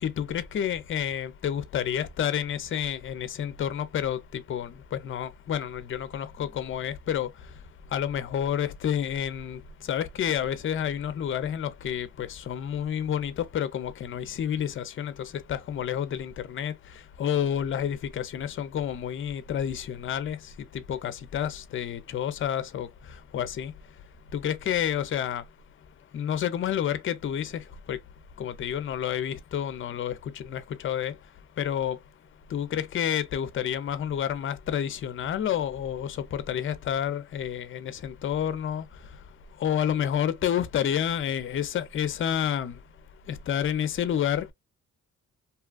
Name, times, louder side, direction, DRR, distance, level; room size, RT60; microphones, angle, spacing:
voice 1, 0.0-7.3 7.9-9.6 9.9-16.7 17.2-20.4 20.7-22.9 23.3-23.7 24.3-25.4 26.1-27.6 27.9-28.0 28.4-31.1 31.6-32.0 32.5-38.8 39.6-42.8 43.3-44.5, left 9 dB, 45° left, 0.5 m, -29 dB
2.8 x 2.3 x 2.3 m
cardioid pair, 90°, 30 cm